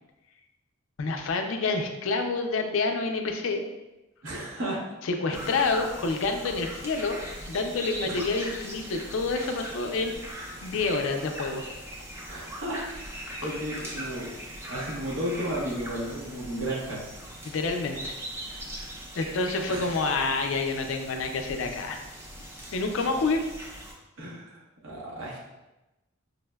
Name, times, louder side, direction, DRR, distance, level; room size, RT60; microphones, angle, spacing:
voice 1, 1.0-3.6 5.0-7.2 7.5-10.2 10.6-11.6 13.3-13.4 17.4-18.2 18.5-18.6 19.2-22.0 22.7-23.4, left 3 dB, 70° left, 4 dB, 0.4 m, -28 dB
voice 2, 4.2-4.8 5.3-5.5 8.0-8.2 12.3-14.4 14.7-17.0 19.7-20.1 24.2-25.4, right 1 dB, 75° right, -5 dB, 1.0 m, -34 dB
sound 1, 5.3-23.9, equal, 10° right, 0.3 m, -40 dB
5.0 x 2.0 x 2.2 m, 1.0 s
head